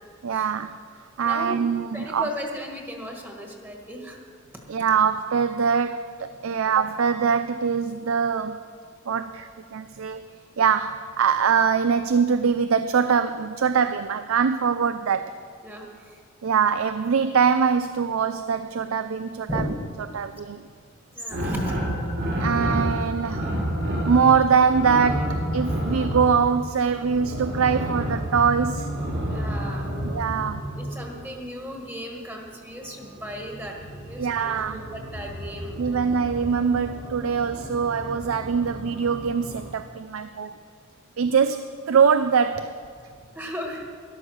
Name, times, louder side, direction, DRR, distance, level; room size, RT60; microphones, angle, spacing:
voice 1, 0.2-0.8 1.2-2.3 4.7-8.6 9.1-10.3 10.6-15.4 16.4-19.6 20.1-20.6 22.4-23.5 24.1-28.9 30.0-30.6 34.2-34.8 35.8-40.6 41.2-42.7, right 6 dB, 90° right, 12 dB, 0.5 m, -23 dB
voice 2, 1.2-1.6 1.9-4.2 15.6-16.2 19.5-19.7 21.1-21.9 29.3-29.9 30.7-36.0 43.1-43.9, equal, 10° right, 1 dB, 1.6 m, -36 dB
sound 1, 21.3-31.3 32.8-39.7, equal, 55° right, 2.5 m, -30 dB
13.0 x 11.5 x 6.4 m, 2.2 s
head